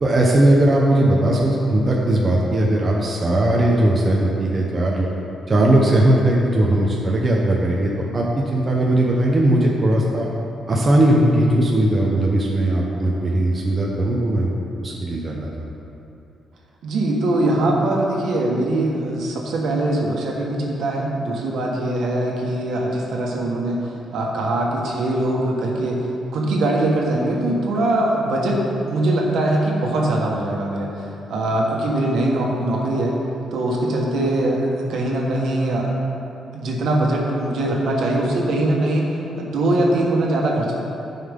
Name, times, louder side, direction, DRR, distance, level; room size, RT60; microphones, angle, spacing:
voice 1, 0.0-5.1 5.5-10.3 10.7-14.5 14.8-15.5, right 1 dB, 25° right, -3 dB, 0.8 m, -18 dB
voice 2, 16.8-28.6 28.9-33.2 33.5-35.9 36.5-40.7, right 1 dB, 65° right, -2 dB, 1.5 m, -22 dB
13.0 x 5.6 x 3.7 m, 2.8 s
cardioid pair, 175°, 0 cm